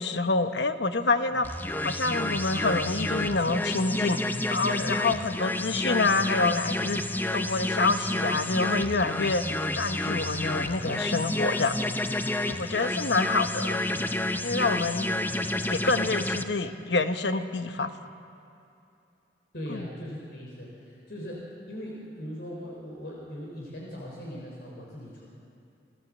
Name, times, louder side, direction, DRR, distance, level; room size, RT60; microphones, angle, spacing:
voice 1, 0.0-1.4 1.8-4.2 4.5-7.0 7.3-9.4 9.7-11.7 12.5-13.8 14.4-15.1 15.7-17.9 19.7-19.9, left 3 dB, 85° left, 9 dB, 1.1 m, -27 dB
sound 1, 1.4-16.4, left 1 dB, 10° left, 0.7 m, -30 dB
voice 2, 19.5-25.2, equal, 65° left, -3 dB, 3.8 m, -40 dB
28.5 x 14.5 x 7.4 m, 2.7 s
head